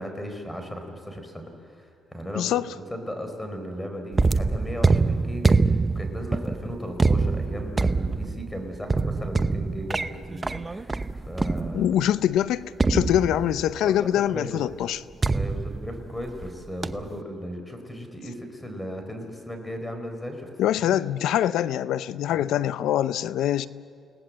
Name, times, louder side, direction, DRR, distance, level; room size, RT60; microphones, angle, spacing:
voice 1, 0.0-2.5 2.9-11.9 13.8-14.8 15.3-20.5 20.8-21.0 22.3-22.6, equal, 10° left, 5 dB, 4.6 m, -36 dB
voice 2, 2.3-2.7 11.7-15.0 20.6-23.7, left 11 dB, 85° left, 15 dB, 0.6 m, -24 dB
sound 1, 4.1-12.1 12.8-13.8 15.2-16.5 16.8-17.2, right 3 dB, 20° right, 0.7 m, -25 dB
29.5 x 18.0 x 7.8 m, 2.4 s
cardioid pair, 90°, 0 cm